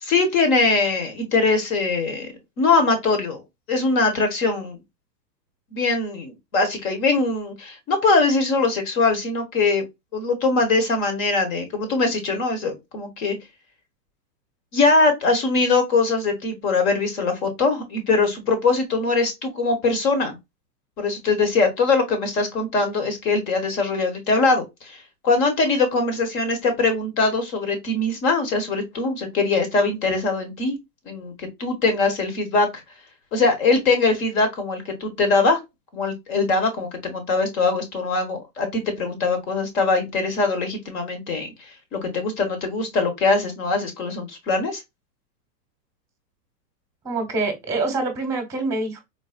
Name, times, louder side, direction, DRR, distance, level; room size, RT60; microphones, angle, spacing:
voice 1, 0.0-3.4 3.7-4.8 5.7-9.8 10.1-13.4 14.7-20.4 21.0-25.0 25.2-30.8 31.0-32.7 33.3-35.6 35.9-41.5 41.9-44.8, left 3 dB, 55° left, 1.4 m, -22 dB
voice 2, 47.0-49.0, right 3 dB, 5° right, 1.0 m, -25 dB
4.0 x 2.3 x 2.3 m
hypercardioid pair, 145°, 50 cm